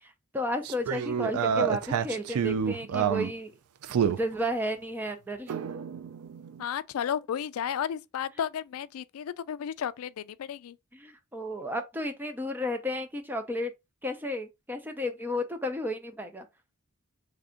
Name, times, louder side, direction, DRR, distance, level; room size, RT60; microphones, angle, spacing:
voice 1, 0.0-3.5 4.0-5.5 10.9-13.7 14.0-16.5, left 1 dB, 10° right, 0.5 m, -33 dB
sound 1, 0.6-3.3 3.8-4.2 5.5-6.6, right 7 dB, 80° right, 0.4 m, -28 dB
voice 2, 6.6-10.8, left 8 dB, 70° left, 0.3 m, -33 dB
3.3 x 2.5 x 3.7 m
head